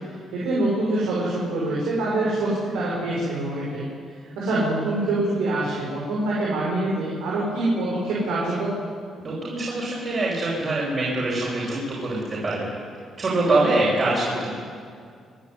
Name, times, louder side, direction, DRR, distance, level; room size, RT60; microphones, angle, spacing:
voice 1, 0.3-3.8 4.4-8.7, right 2 dB, 90° right, -6 dB, 5.9 m, -25 dB
voice 2, 9.2-12.7 13.2-14.5, right 2 dB, 40° right, -6 dB, 7.7 m, -24 dB
27.5 x 11.5 x 9.8 m, 2.2 s
cardioid pair, 90°, 0 cm